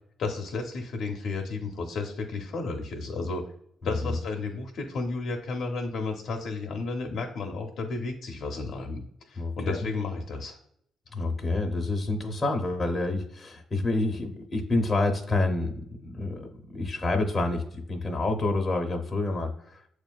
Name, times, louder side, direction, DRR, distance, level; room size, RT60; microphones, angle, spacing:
voice 1, 0.2-3.5 3.8-10.6, left 3 dB, 70° left, 1 dB, 0.6 m, -33 dB
voice 2, 9.4-9.8 11.1-16.5 16.7-19.8, left 2 dB, 30° left, 2 dB, 0.7 m, -28 dB
6.7 x 2.4 x 2.3 m, 0.69 s
cardioid pair, 90°, 0 cm